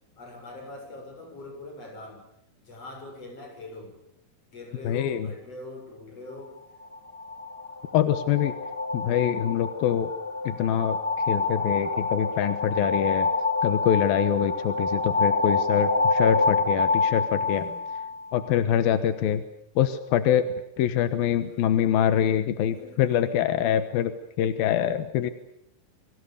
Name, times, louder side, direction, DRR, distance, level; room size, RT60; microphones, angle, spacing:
voice 1, 0.2-2.2 2.6-4.0 4.5-6.6 17.5-17.8 22.7-23.3, left 2 dB, 40° left, 3 dB, 8.2 m, -42 dB
voice 2, 4.8-5.3 7.9-8.6 8.9-10.1 10.5-13.3 13.6-17.7 18.3-19.4 19.8-25.3, left 10 dB, 90° left, 11 dB, 3.1 m, -24 dB
sound 1, 6.8-18.5, left 3 dB, 20° left, 1.5 m, -27 dB
29.0 x 24.0 x 6.9 m, 0.76 s
omnidirectional pair, 4.1 m